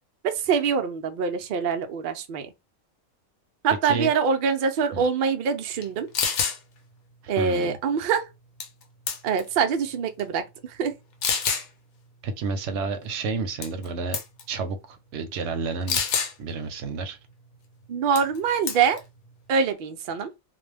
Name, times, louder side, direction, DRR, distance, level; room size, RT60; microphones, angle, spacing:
voice 1, 0.2-2.5 3.6-6.1 7.3-8.3 9.2-10.9 17.9-19.0 19.5-20.3, right 6 dB, 90° right, 0.4 m, -24 dB
sound 1, 5.8-5.9 6.1-6.6 8.6-8.8 9.1-9.5 10.2-10.3 11.2-11.7 13.6-13.9 14.1-14.4 15.9-16.3 18.2-18.4 18.7-19.0, left 6 dB, 90° left, 1.1 m, -26 dB
voice 2, 7.2-7.8 12.2-14.2 14.5-16.0 16.4-17.2, right 4 dB, 65° right, 0.8 m, -30 dB
2.4 x 2.1 x 3.2 m
omnidirectional pair, 1.4 m